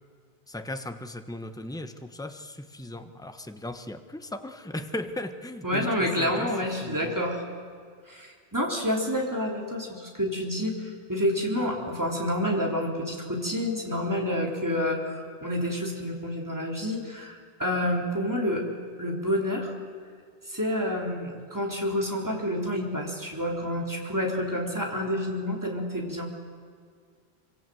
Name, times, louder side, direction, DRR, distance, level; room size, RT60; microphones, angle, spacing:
voice 1, 0.5-5.9 6.2-6.5 6.8-7.2, left 1 dB, 5° left, 8 dB, 1.1 m, -37 dB
voice 2, 5.6-7.4 8.1-18.7 19.0-19.7 20.5-26.3, equal, 15° right, -1 dB, 3.7 m, -29 dB
25.5 x 25.0 x 7.8 m, 2.1 s
omnidirectional pair, 1.1 m